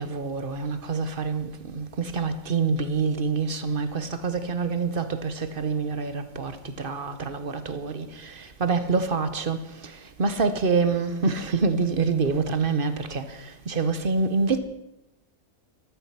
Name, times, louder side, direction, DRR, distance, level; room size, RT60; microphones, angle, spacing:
voice 1, 0.0-6.5 6.8-9.9 10.2-13.4 13.7-14.6, right 4 dB, 40° right, 1.2 m, -26 dB
13.0 x 13.0 x 5.9 m
omnidirectional pair, 1.6 m